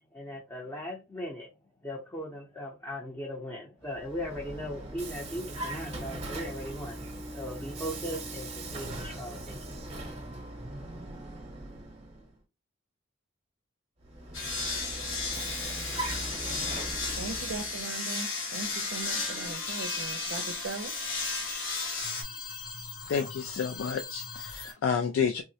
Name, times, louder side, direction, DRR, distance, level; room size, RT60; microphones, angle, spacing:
voice 1, 0.1-1.5 1.8-7.0 7.3-9.8, equal, 15° left, 0.6 m, -38 dB
Vehicle, 3.8-12.3 14.0-17.9, right 1 dB, 30° right, 0.7 m, -40 dB
sound 1, 14.3-22.2, left 3 dB, 70° left, 1.1 m, -34 dB
voice 2, 17.2-20.9, right 3 dB, 65° right, 0.4 m, -39 dB
sound 2, 18.6-24.7, left 3 dB, 50° left, 1.1 m, -42 dB
voice 3, 23.1-25.4, left 6 dB, 90° left, 0.3 m, -30 dB
3.6 x 2.1 x 2.7 m
head